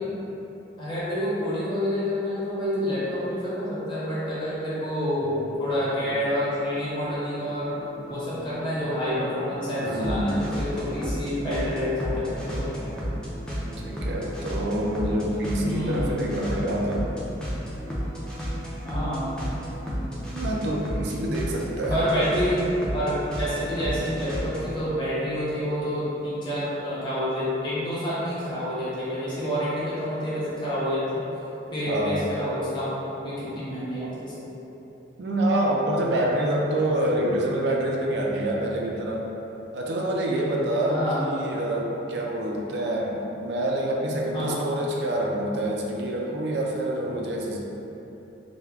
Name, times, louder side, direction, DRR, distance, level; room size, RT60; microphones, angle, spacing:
voice 1, 0.8-7.7 8.1-13.0 15.6-16.2 18.8-19.4 21.9-22.6 22.9-31.2 31.7-34.5 40.8-41.3 44.3-44.7, equal, 25° left, -10 dB, 0.9 m, -28 dB
sound 1, 5.2-24.8, equal, 5° left, 0.4 m, -33 dB
voice 2, 9.8-10.4 13.8-17.0 20.3-22.0 31.9-32.3 34.0-34.1 35.2-39.3 39.7-47.6, right 1 dB, 75° right, -2 dB, 0.4 m, -26 dB
3.4 x 2.2 x 3.4 m, 3.0 s
head